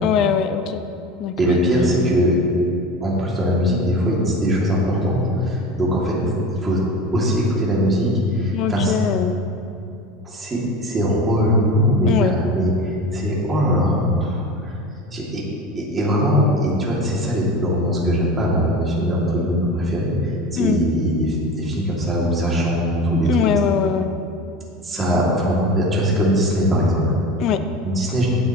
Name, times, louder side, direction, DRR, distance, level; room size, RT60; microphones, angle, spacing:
voice 1, 0.0-0.8 1.2-1.3 8.5-9.3 12.1-12.4 20.6-20.8 23.2-24.1 27.4-27.6, left 9 dB, 45° left, 9 dB, 0.7 m, -21 dB
voice 2, 1.4-2.4 3.0-6.1 6.5-6.8 7.1-8.1 8.4-8.9 10.2-14.7 15.1-15.4 15.7-20.1 20.5-23.6 24.8-27.0 27.8-28.3, equal, 20° right, -5 dB, 2.6 m, -20 dB
16.5 x 8.1 x 3.1 m, 2.6 s
supercardioid pair, 145°, 0 cm